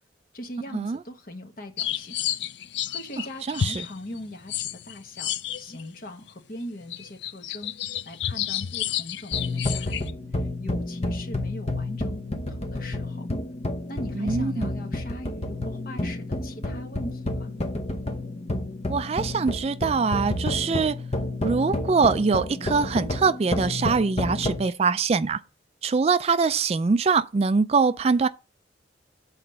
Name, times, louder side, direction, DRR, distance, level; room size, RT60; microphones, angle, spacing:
voice 1, 0.3-2.2 2.9-7.7 8.0-13.3 13.9-17.5, left 1 dB, 50° left, 1.3 m, -40 dB
sound 1, 1.8-5.9 6.3-6.4 6.8-10.1, left 10 dB, 65° left, 0.4 m, -31 dB
voice 2, 3.5-3.8 14.2-14.7 18.9-21.0 21.4-25.4 25.8-28.3, right 4 dB, 35° right, 0.3 m, -23 dB
sound 2, 9.3-24.6, left 2 dB, 35° left, 0.9 m, -30 dB
8.0 x 4.2 x 6.7 m
head